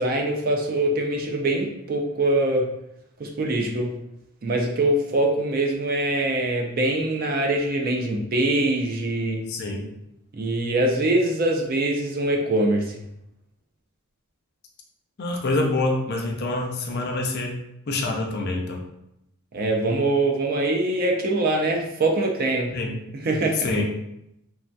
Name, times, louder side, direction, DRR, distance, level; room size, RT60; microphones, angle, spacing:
voice 1, 0.0-2.7 3.2-3.9 4.4-9.4 10.3-13.0 19.5-22.7 23.2-23.6, right 2 dB, 40° right, 2 dB, 0.4 m, -23 dB
voice 2, 9.5-9.9 15.2-18.8 22.7-23.0 23.5-24.0, left 2 dB, 45° left, 1 dB, 0.4 m, -26 dB
3.2 x 2.6 x 2.2 m, 0.82 s
head